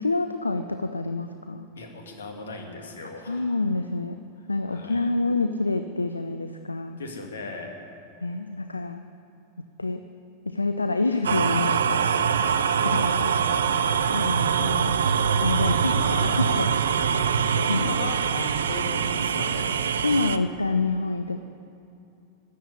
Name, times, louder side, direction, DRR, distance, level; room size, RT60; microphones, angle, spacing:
voice 1, 0.0-1.7 3.2-4.2 4.5-7.0 8.2-9.0 9.8-10.0 10.4-12.1 12.8-13.4 14.0-15.0 15.4-15.9 16.4-16.7 17.7-17.9 20.0-21.4, left 3 dB, 80° left, 9 dB, 0.5 m, -27 dB
voice 2, 1.8-3.6 4.7-5.1 7.0-7.7 12.0-13.9 15.6-16.5 17.1-17.3 17.5-20.0, left 3 dB, 65° left, 2 dB, 2.2 m, -37 dB
sound 1, 11.2-20.4, right 7 dB, 65° right, 0.5 m, -24 dB
13.0 x 8.7 x 9.8 m, 2.7 s
figure-of-eight pair, 90°, 0 cm